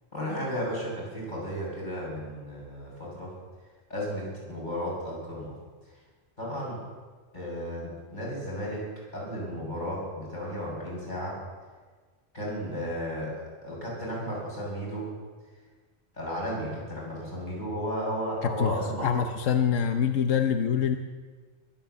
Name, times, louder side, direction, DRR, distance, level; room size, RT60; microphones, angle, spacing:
voice 1, 0.1-3.3 3.9-5.5 6.4-6.8 7.3-8.8 9.1-11.4 12.3-13.3 13.6-15.1 16.2-19.1, equal, 40° left, -5 dB, 7.1 m, -34 dB
voice 2, 19.0-21.0, left 8 dB, 90° left, 6 dB, 1.2 m, -25 dB
21.5 x 9.0 x 7.0 m, 1.4 s
omnidirectional pair, 1.3 m